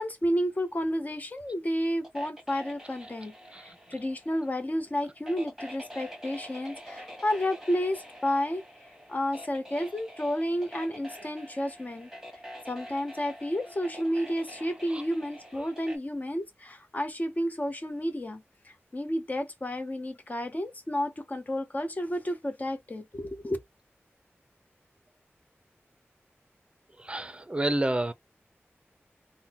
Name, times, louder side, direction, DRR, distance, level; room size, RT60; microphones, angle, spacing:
voice 1, 0.0-8.6 9.1-12.1 12.7-23.6, equal, 35° left, 0.9 m, -31 dB
sound 1, 2.0-16.0, equal, 5° right, 1.6 m, -46 dB
voice 2, 27.0-28.1, right 1 dB, 25° right, 0.6 m, -30 dB
3.7 x 2.2 x 2.9 m
wide cardioid pair, 85°, 5 cm